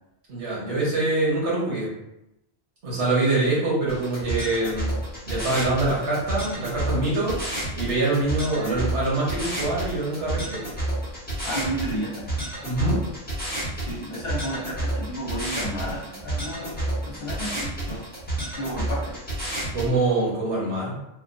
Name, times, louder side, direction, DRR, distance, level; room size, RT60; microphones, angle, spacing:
voice 1, 0.3-1.9 2.8-4.9 5.3-7.4 7.8-10.6 12.6-13.0 19.7-20.9, right 2 dB, 90° right, -6 dB, 1.5 m, -24 dB
sound 1, 3.9-19.9, right 1 dB, 10° left, 1.0 m, -30 dB
voice 2, 11.4-12.3 13.7-18.0 18.6-19.2, right 1 dB, 65° left, -4 dB, 1.1 m, -32 dB
3.4 x 2.4 x 2.6 m, 0.87 s
omnidirectional pair, 1.1 m